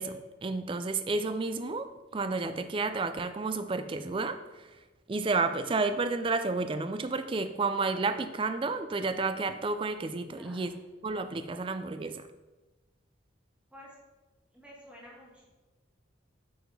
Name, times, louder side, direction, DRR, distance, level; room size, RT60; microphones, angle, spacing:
voice 1, 0.0-4.7 5.1-10.7 11.0-12.3, right 3 dB, 25° right, 10 dB, 0.3 m, -31 dB
voice 2, 10.3-10.8 13.7-13.9 14.5-15.4, equal, 5° right, -5 dB, 1.5 m, -51 dB
8.8 x 4.6 x 3.2 m, 1.2 s
head